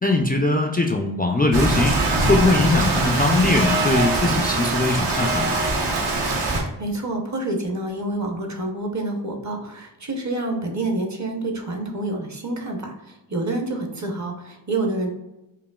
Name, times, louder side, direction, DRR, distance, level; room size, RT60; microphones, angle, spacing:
voice 1, 0.0-2.0 2.3-5.6, left 2 dB, 20° left, 3 dB, 0.3 m, -21 dB
Rain, 1.5-6.6, right 2 dB, 70° right, 1.0 m, -22 dB
voice 2, 6.6-15.1, right 2 dB, 40° right, 2 dB, 0.8 m, -28 dB
5.0 x 2.8 x 2.3 m, 0.94 s
wide cardioid pair, 85°, 43 cm